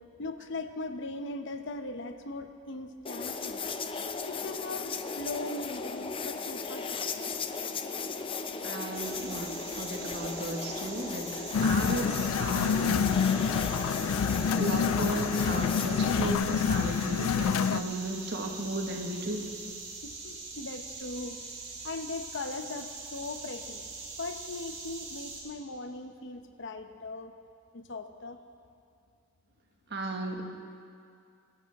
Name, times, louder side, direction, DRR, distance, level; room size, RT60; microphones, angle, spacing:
voice 1, 0.2-3.6 4.2-7.3 20.0-21.4 21.8-23.8 24.2-27.3 27.7-28.4, left 2 dB, 60° left, 7 dB, 0.9 m, -39 dB
sound 1, 3.1-16.3, left 4 dB, 25° left, 0.6 m, -36 dB
voice 2, 8.6-13.5 14.6-19.5 29.9-30.5, right 1 dB, 55° right, 2 dB, 1.6 m, -35 dB
sound 2, 8.9-25.4, right 3 dB, 75° right, 4.0 m, -43 dB
sound 3, 11.5-17.8, left 6 dB, 90° left, 0.4 m, -27 dB
23.5 x 13.5 x 3.6 m, 2.5 s
head